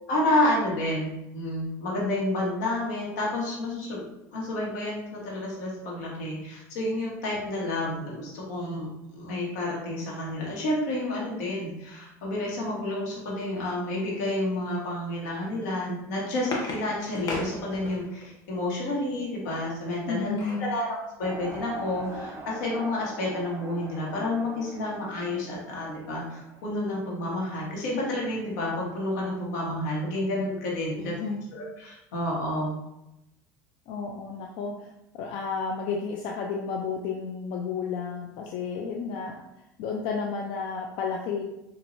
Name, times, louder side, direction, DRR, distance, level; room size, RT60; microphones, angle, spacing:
voice 1, 0.1-4.0 4.3-20.3 20.6-31.1 31.5-32.7, left 1 dB, 85° left, -3 dB, 1.3 m, -30 dB
sound 1, 16.1-18.3 19.8-20.7 21.2-21.3 21.6-21.8, left 2 dB, 45° left, 0.9 m, -36 dB
voice 2, 20.1-20.7 31.0-31.4 33.9-34.9 35.1-39.3 39.8-41.4, left 5 dB, 65° left, 1 dB, 0.4 m, -32 dB
sound 2, 21.2-27.1, right 1 dB, 30° right, 0.7 m, -42 dB
4.3 x 2.6 x 2.7 m, 0.89 s
supercardioid pair, 90°, 9 cm